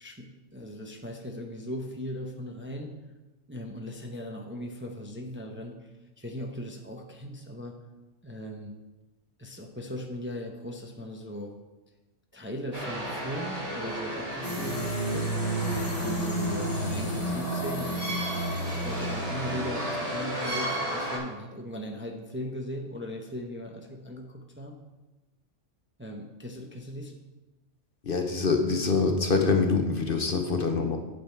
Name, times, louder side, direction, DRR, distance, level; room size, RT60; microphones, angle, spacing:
voice 1, 0.0-3.0 3.5-7.8 8.2-8.8 9.4-11.5 12.3-15.3 16.0-18.3 18.6-24.8 26.0-27.1, equal, 10° right, 2 dB, 0.7 m, -38 dB
sound 1, 12.7-21.2, right 1 dB, 30° right, 2.5 m, -34 dB
sound 2, 14.4-19.6, right 1 dB, 75° left, 2.0 m, -31 dB
voice 2, 28.0-31.0, left 4 dB, 50° left, 4 dB, 1.0 m, -25 dB
8.7 x 7.8 x 4.5 m, 1.1 s
omnidirectional pair, 1.3 m